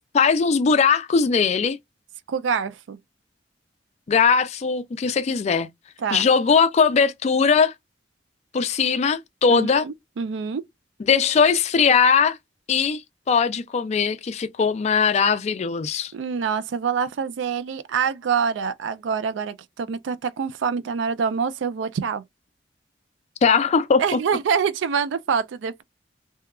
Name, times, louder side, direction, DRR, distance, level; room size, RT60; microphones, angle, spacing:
voice 1, 0.1-1.8 4.1-5.7 6.1-7.7 8.5-9.9 11.0-12.4 12.7-13.0 13.3-16.1 23.4-24.2, left 5 dB, 35° left, 0.3 m, -20 dB
voice 2, 2.3-3.0 6.0-6.3 9.5-10.6 16.1-22.2 24.0-25.8, right 6 dB, 90° right, 0.4 m, -26 dB
2.8 x 2.3 x 2.2 m
head